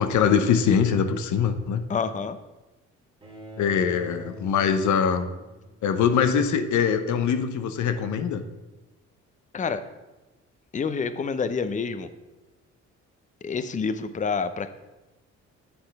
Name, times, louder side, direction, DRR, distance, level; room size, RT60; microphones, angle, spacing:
voice 1, 0.0-1.8 3.6-5.3 5.8-8.4, left 7 dB, 70° left, 9 dB, 0.8 m, -23 dB
voice 2, 1.9-2.4 9.5-9.8 10.7-12.1 13.4-14.7, left 5 dB, 25° left, 12 dB, 0.5 m, -28 dB
Bowed string instrument, 3.2-6.3, equal, 20° right, 2.0 m, -43 dB
7.8 x 4.3 x 5.2 m, 1.1 s
cardioid pair, 90°, 30 cm